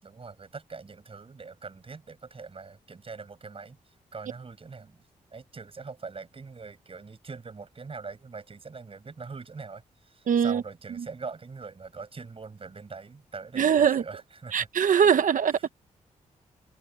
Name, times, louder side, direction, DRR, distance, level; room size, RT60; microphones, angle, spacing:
voice 1, 0.0-5.0 5.3-14.7 15.5-15.7, right 4 dB, 40° right, 7.0 m, -43 dB
voice 2, 10.3-10.6 13.6-14.0 14.5-15.7, right 7 dB, 70° right, 1.2 m, -22 dB
open air
cardioid pair, 70°, 14 cm